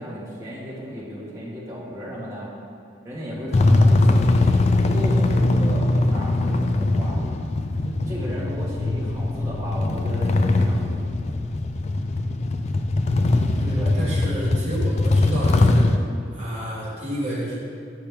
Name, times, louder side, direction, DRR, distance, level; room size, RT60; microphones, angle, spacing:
voice 1, 0.0-2.5 3.0-4.3 4.8-7.2 7.8-10.9 13.8-13.9, equal, 15° right, -8 dB, 1.6 m, -34 dB
sound 1, 3.5-16.0, left 2 dB, 35° left, 0.3 m, -21 dB
voice 2, 13.5-17.6, right 1 dB, 30° right, -9 dB, 1.8 m, -30 dB
8.6 x 5.7 x 3.5 m, 2.5 s
head